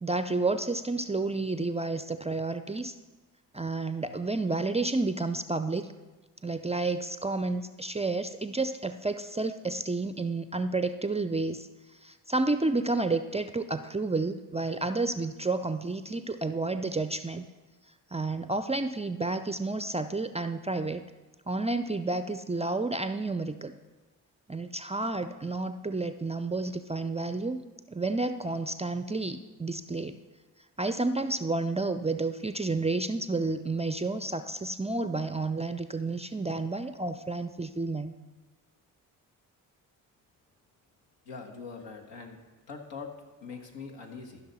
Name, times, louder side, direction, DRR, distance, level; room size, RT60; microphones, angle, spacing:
voice 1, 0.0-2.9 3.5-5.9 6.4-11.7 12.0-17.4 18.1-21.0 21.5-23.8 24.5-27.6 27.9-30.2 30.8-38.1, right 3 dB, 15° right, 10 dB, 0.4 m, -30 dB
voice 2, 41.2-42.4 42.7-43.1 43.4-44.4, left 5 dB, 75° left, 2 dB, 1.5 m, -42 dB
14.0 x 5.9 x 4.1 m, 1.2 s
hypercardioid pair, 40°, 44 cm